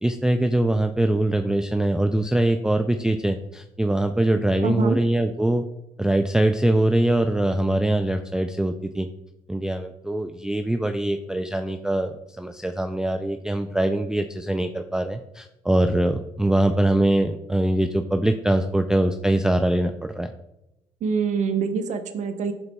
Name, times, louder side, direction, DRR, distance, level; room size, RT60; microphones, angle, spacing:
voice 1, 0.0-5.6 6.0-9.1 9.5-20.3, right 1 dB, 5° right, 7 dB, 0.4 m, -23 dB
voice 2, 4.6-5.0 21.0-22.5, right 5 dB, 60° right, 8 dB, 0.8 m, -25 dB
12.0 x 4.0 x 2.3 m, 0.90 s
supercardioid pair, 65°, 14 cm